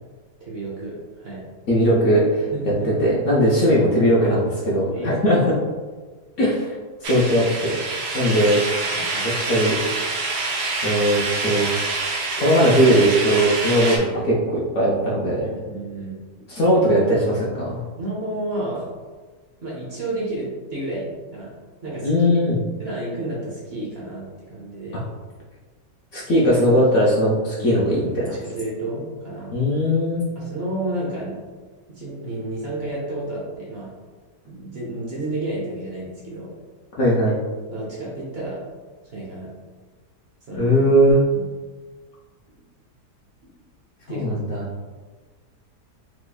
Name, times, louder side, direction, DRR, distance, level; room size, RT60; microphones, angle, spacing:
voice 1, 0.4-1.5 2.5-2.9 4.9-5.3 8.9-9.3 15.4-16.2 18.0-18.8 19.6-21.5 21.8-22.3 22.8-24.2 24.5-25.0 27.5-27.8 28.2-29.5 30.4-31.5 31.9-33.9 34.5-36.5 37.7-38.6 39.0-39.5 40.5-40.8 41.3-41.5 44.1-44.7, right 1 dB, 55° right, -5 dB, 0.7 m, -31 dB
voice 2, 1.7-2.5 3.0-5.4 6.4-7.8 8.1-8.6 9.5-9.8 10.8-11.7 12.4-15.4 16.5-17.8 22.0-22.6 26.1-28.1 29.5-30.2 37.0-37.3 40.6-41.2 44.1-44.6, equal, 65° left, -6 dB, 0.8 m, -19 dB
sound 1, 7.0-14.0, right 3 dB, 80° right, 1.2 m, -26 dB
3.9 x 2.9 x 2.2 m, 1.4 s
omnidirectional pair, 1.8 m